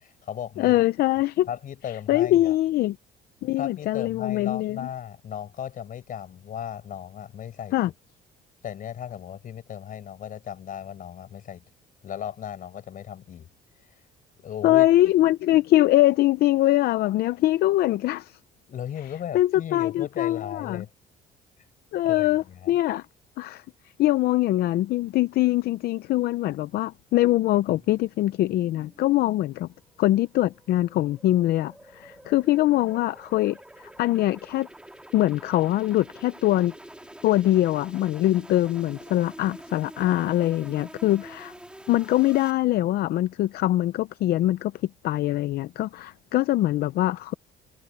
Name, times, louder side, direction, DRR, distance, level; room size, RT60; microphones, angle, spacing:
voice 1, 0.0-0.8 1.5-2.5 3.5-7.7 8.6-11.6 12.0-13.5 14.4-14.9 18.7-20.9 22.0-22.8, left 9 dB, 55° left, 6.9 m, -36 dB
voice 2, 0.6-1.5 2.1-3.0 3.4-4.9 7.7-7.9 14.6-18.4 19.3-20.8 21.9-23.0 23.4-23.6 24.0-29.7 30.0-34.7 35.1-36.7 37.2-41.5 41.9-47.3, left 15 dB, 70° left, 0.6 m, -23 dB
sound 1, 27.7-42.5, right 1 dB, 5° right, 3.0 m, -47 dB
cardioid pair, 110°, 17 cm